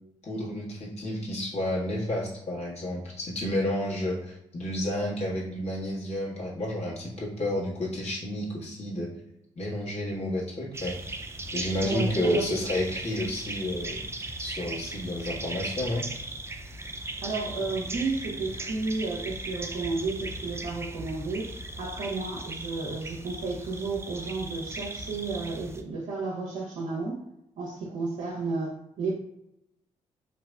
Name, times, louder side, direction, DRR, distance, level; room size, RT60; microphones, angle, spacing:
voice 1, 0.2-9.1 9.6-11.1 11.5-14.0 14.4-16.1, left 1 dB, 45° left, -5 dB, 1.3 m, -31 dB
sound 1, 10.7-25.8, right 2 dB, 15° right, 0.4 m, -37 dB
voice 2, 11.8-12.5 17.2-27.2 27.6-29.1, right 3 dB, 60° right, -3 dB, 0.7 m, -32 dB
4.0 x 2.6 x 2.2 m, 0.84 s
figure-of-eight pair, 40°, 15 cm